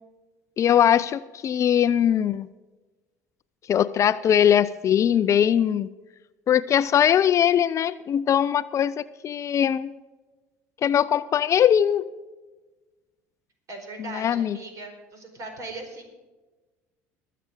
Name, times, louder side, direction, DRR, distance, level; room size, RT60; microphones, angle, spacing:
voice 1, 0.6-2.5 3.7-5.9 6.5-9.9 10.8-12.1 14.0-14.6, left 9 dB, 40° left, 16 dB, 0.5 m, -21 dB
voice 2, 13.7-16.1, right 3 dB, 45° right, 4 dB, 4.6 m, -39 dB
22.0 x 7.7 x 5.0 m, 1.2 s
hypercardioid pair, 70°, 8 cm